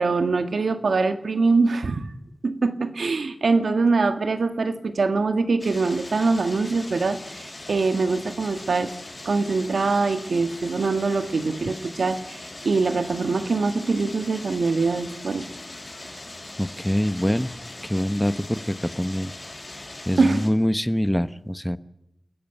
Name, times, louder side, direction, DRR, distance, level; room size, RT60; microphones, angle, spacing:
voice 1, 0.0-2.1 2.4-8.9 9.2-15.5 20.2-20.5, right 4 dB, 85° right, 8 dB, 1.6 m, -23 dB
sound 1, 5.6-20.5, left 2 dB, 35° left, 6.8 m, -40 dB
voice 2, 16.6-17.5 17.9-18.6 19.0-19.3 20.1-21.8, equal, 5° left, 13 dB, 0.9 m, -24 dB
29.0 x 14.5 x 9.0 m, 0.87 s
wide cardioid pair, 65°, 0 cm